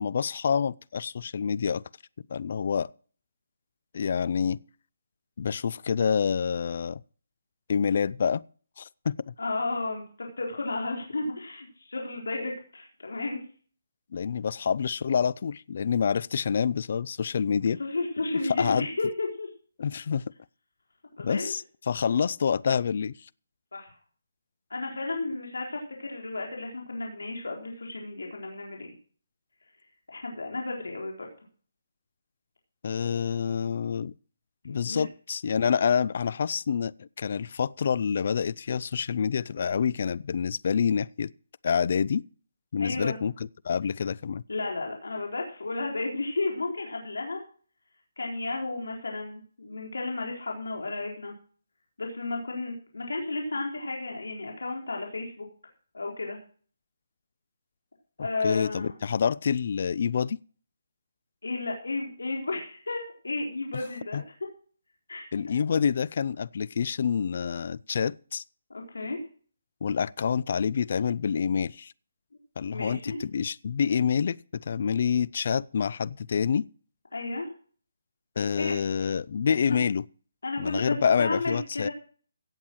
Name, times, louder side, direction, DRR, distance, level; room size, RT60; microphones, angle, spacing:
voice 1, 0.0-1.8 2.3-2.9 3.9-4.6 5.4-7.0 7.7-8.4 8.8-9.3 14.1-17.8 18.6-18.9 19.8-20.3 21.2-23.1 32.8-34.1 34.6-41.3 41.6-42.2 42.7-43.3 43.6-44.4 58.4-60.4 64.1-64.2 65.3-68.4 69.8-71.9 72.6-76.7 78.4-80.0 80.6-81.9, left 6 dB, 50° left, 0.6 m, -27 dB
voice 2, 9.4-13.4 17.6-19.5 21.2-21.5 23.7-23.9 24.7-28.9 30.1-31.3 34.8-35.0 42.8-43.2 44.5-47.4 48.2-51.3 52.0-55.5 55.9-56.4 58.2-58.9 61.4-64.2 65.1-65.3 68.7-69.2 72.6-73.2 77.1-77.5 78.6-78.7 79.6-79.8 80.4-81.9, left 2 dB, 85° left, 4.1 m, -33 dB
17.0 x 7.4 x 6.3 m
hypercardioid pair, 160°, 0 cm